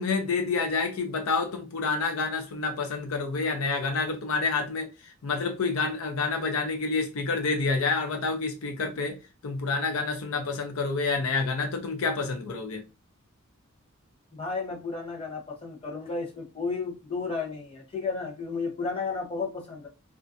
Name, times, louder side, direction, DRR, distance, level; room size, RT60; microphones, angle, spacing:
voice 1, 0.0-4.9 5.2-9.1 9.4-12.8, left 4 dB, 75° left, 0.5 m, -28 dB
voice 2, 14.3-19.9, left 4 dB, 25° left, 0.9 m, -33 dB
3.2 x 2.5 x 2.5 m
head